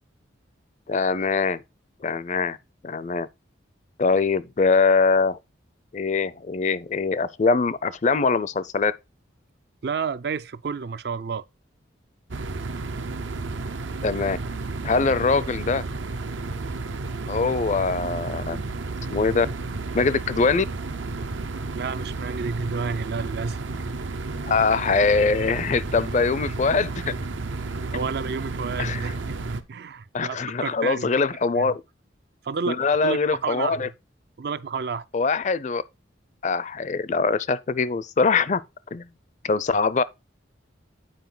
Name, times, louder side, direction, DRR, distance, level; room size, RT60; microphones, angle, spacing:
voice 1, 0.9-1.6 2.0-2.6 2.8-3.3 4.0-5.4 5.9-8.9 14.0-14.4 14.8-15.8 17.3-18.7 19.1-19.5 19.9-20.7 24.4-27.1 28.8-29.0 30.1-31.8 32.7-33.9 35.1-35.8 36.4-38.6 38.9-39.1 39.4-40.0, left 4 dB, 40° left, 0.4 m, -23 dB
voice 2, 9.8-11.4 21.7-23.9 27.9-29.1 29.5-31.1 31.6-31.7 32.4-33.8 34.4-35.1, right 5 dB, 55° right, 0.4 m, -30 dB
sound 1, 12.3-29.6, right 3 dB, 80° right, 0.8 m, -32 dB
9.2 x 4.8 x 3.9 m
head